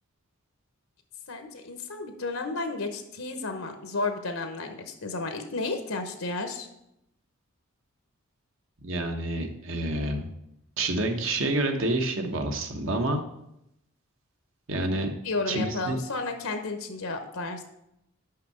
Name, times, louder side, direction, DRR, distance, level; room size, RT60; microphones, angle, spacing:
voice 1, 1.3-6.7 15.2-17.6, left 3 dB, 85° left, 6 dB, 0.9 m, -32 dB
voice 2, 8.8-10.3 10.8-13.2 14.7-15.1 15.5-16.0, right 1 dB, 65° right, 5 dB, 1.0 m, -28 dB
5.8 x 5.6 x 6.6 m, 0.81 s
head